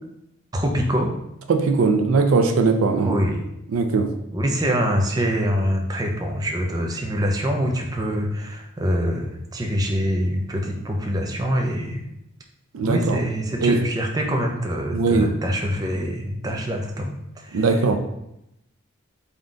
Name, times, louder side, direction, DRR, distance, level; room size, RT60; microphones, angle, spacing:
voice 1, 0.5-1.1 3.0-3.4 4.3-12.0 12.8-17.6, equal, 20° right, 1 dB, 0.4 m, -24 dB
voice 2, 1.5-3.1 3.7-4.1 12.7-13.2 13.6-13.8 14.9-15.3 17.5-18.0, right 4 dB, 80° right, 6 dB, 0.4 m, -19 dB
3.8 x 2.2 x 3.7 m, 0.83 s
head